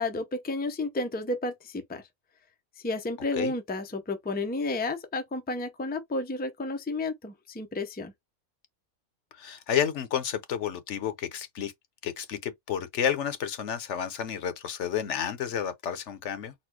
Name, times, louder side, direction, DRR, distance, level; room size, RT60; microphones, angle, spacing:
voice 1, 0.0-2.0 2.8-8.1, left 2 dB, 15° left, 0.3 m, -31 dB
voice 2, 9.3-11.7 12.0-16.5, left 9 dB, 60° left, 1.0 m, -31 dB
4.2 x 2.1 x 4.5 m
omnidirectional pair, 1.5 m